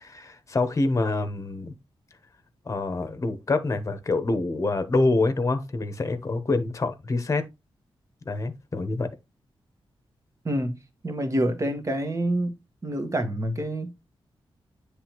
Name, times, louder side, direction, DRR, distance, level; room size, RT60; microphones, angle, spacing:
voice 1, 0.0-1.7 2.7-7.4 8.3-9.1, left 3 dB, 35° left, 1.0 m, -26 dB
voice 2, 10.4-10.8 11.0-12.6 12.8-14.0, right 1 dB, 35° right, 1.4 m, -27 dB
9.7 x 3.3 x 3.0 m
wide cardioid pair, 110°, 9 cm